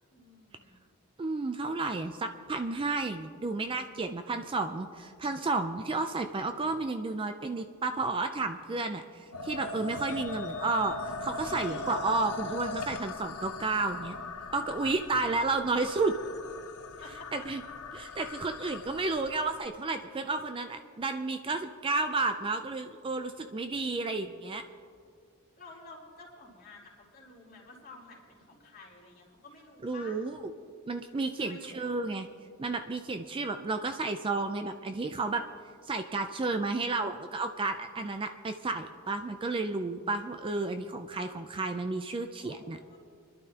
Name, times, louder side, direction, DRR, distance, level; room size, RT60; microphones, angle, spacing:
voice 1, 0.1-0.8 11.4-12.0 17.0-17.3 25.6-30.2 31.4-32.0 42.4-43.0, left 2 dB, 40° left, -3 dB, 2.9 m, -51 dB
voice 2, 1.2-10.9 11.2-14.2 14.5-16.2 17.3-17.6 17.9-24.6 29.8-30.5 30.9-32.3 32.6-35.5 35.8-42.8, right 3 dB, 25° right, 8 dB, 0.4 m, -32 dB
sound 1, 9.3-19.6, left 3 dB, 75° left, 0.8 m, -40 dB
25.5 x 11.5 x 2.9 m, 2.2 s
head